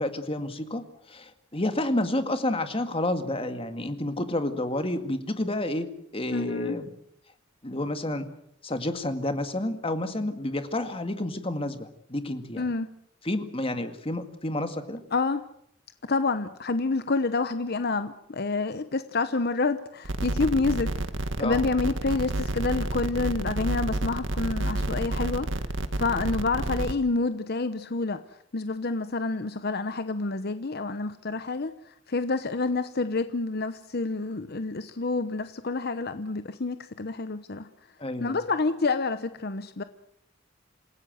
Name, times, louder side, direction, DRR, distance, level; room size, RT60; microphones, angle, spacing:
voice 1, 0.0-6.9 7.6-8.3 8.6-12.7 13.2-15.0 21.4-21.7 38.0-38.4, left 1 dB, 30° left, 8 dB, 2.0 m, -30 dB
voice 2, 6.3-6.8 12.6-12.9 15.1-15.4 16.1-20.9 21.4-25.5 26.0-28.2 28.5-31.7 32.1-37.7 38.2-39.8, left 3 dB, 55° left, 11 dB, 0.9 m, -28 dB
sound 1, 20.0-26.9, right 1 dB, 75° right, 1.7 m, -30 dB
27.5 x 16.0 x 7.8 m, 0.71 s
head